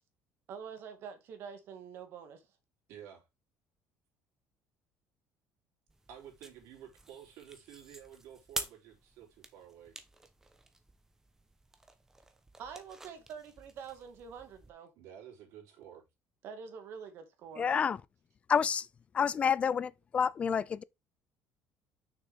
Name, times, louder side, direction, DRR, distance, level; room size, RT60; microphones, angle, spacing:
voice 1, 0.5-2.4 12.6-14.9 16.4-17.7, right 6 dB, 50° right, 1.9 m, -46 dB
voice 2, 2.9-3.3 6.1-9.9 14.9-16.0, right 9 dB, 65° right, 3.6 m, -51 dB
sound 1, 5.9-14.7, right 2 dB, 10° right, 0.9 m, -48 dB
voice 3, 17.6-18.0 18.5-18.9 19.1-20.8, left 7 dB, 25° left, 0.3 m, -29 dB
6.5 x 6.2 x 3.6 m
cardioid pair, 160°, 5 cm